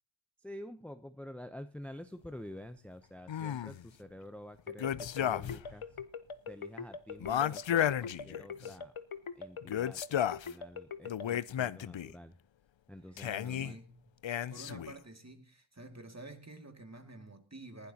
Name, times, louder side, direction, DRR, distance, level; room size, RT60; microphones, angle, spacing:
voice 1, 0.4-6.0 6.5-8.9 9.3-12.3 12.9-13.8, left 1 dB, 5° left, 0.7 m, -49 dB
sound 1, 3.3-3.8 4.8-5.7 6.0-6.1 7.2-8.7 9.6-10.5 11.1-12.1 13.2-13.7 14.2-15.0, left 10 dB, 70° left, 0.5 m, -33 dB
sound 2, 4.7-11.4, left 6 dB, 90° left, 0.9 m, -42 dB
voice 2, 13.3-14.1 14.5-17.9, right 2 dB, 35° right, 2.3 m, -50 dB
19.5 x 12.0 x 2.9 m
wide cardioid pair, 40°, 48 cm